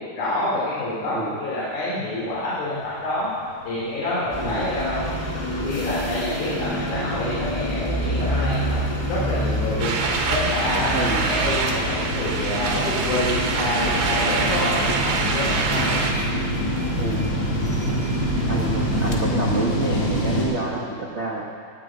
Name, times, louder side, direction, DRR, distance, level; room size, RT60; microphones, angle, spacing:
voice 1, 0.2-3.3 3.6-5.2 5.6-10.0 10.3-16.0, left 1 dB, 75° left, -9 dB, 4.3 m, -27 dB
sound 1, 2.7-20.4, left 1 dB, 55° left, 4.3 m, -29 dB
sound 2, 4.3-19.2, right 1 dB, 20° left, 1.2 m, -28 dB
sound 3, 9.8-16.1, right 4 dB, 90° right, 2.9 m, -25 dB
voice 2, 10.9-11.5 17.0-17.3 18.5-21.4, right 3 dB, 65° right, -4 dB, 0.6 m, -28 dB
19.5 x 8.6 x 5.0 m, 2.3 s
omnidirectional pair, 3.5 m